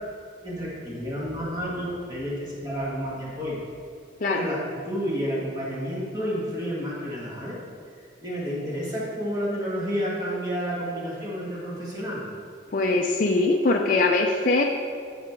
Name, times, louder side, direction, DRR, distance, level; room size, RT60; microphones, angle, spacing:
voice 1, 0.4-3.6 4.3-7.6 8.2-12.3, equal, 20° right, -6 dB, 1.9 m, -30 dB
voice 2, 12.7-14.6, left 2 dB, 45° left, 1 dB, 0.4 m, -22 dB
13.0 x 4.9 x 3.6 m, 2.1 s
head